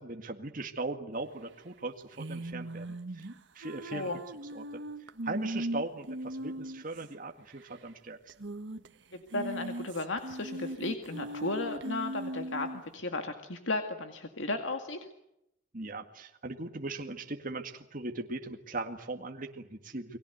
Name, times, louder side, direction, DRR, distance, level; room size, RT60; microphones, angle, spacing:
voice 1, 0.0-3.3 3.5-4.1 4.5-4.8 5.2-8.3 15.7-20.2, right 2 dB, 45° right, 4 dB, 2.0 m, -39 dB
sound 1, 2.1-7.0 7.3-7.4 7.6-7.7 8.3-8.9 9.2-12.8, right 1 dB, 75° right, 1.3 m, -39 dB
voice 2, 9.3-12.7 12.9-15.0, left 2 dB, 85° left, 6 dB, 2.1 m, -34 dB
30.0 x 21.5 x 8.1 m, 0.83 s
head